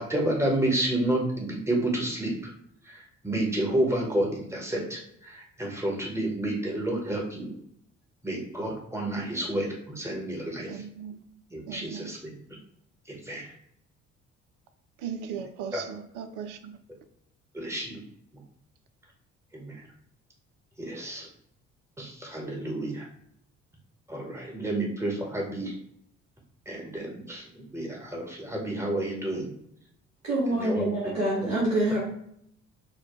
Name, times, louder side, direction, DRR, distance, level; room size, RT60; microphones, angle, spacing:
voice 1, 0.0-2.3 2.9-7.5 8.2-10.8 11.5-12.3 13.1-13.5 15.7-15.8 17.5-18.0 19.5-19.8 20.8-21.3 22.0-23.1 24.1-25.7 26.7-29.5 30.6-30.9, right 1 dB, 5° right, -1 dB, 1.1 m, -30 dB
voice 2, 10.7-11.2 11.7-12.2 15.0-16.7, right 7 dB, 55° right, 8 dB, 0.5 m, -38 dB
voice 3, 30.2-32.0, right 1 dB, 90° right, -7 dB, 0.9 m, -26 dB
4.3 x 2.2 x 3.1 m, 0.71 s
figure-of-eight pair, 50°, 37 cm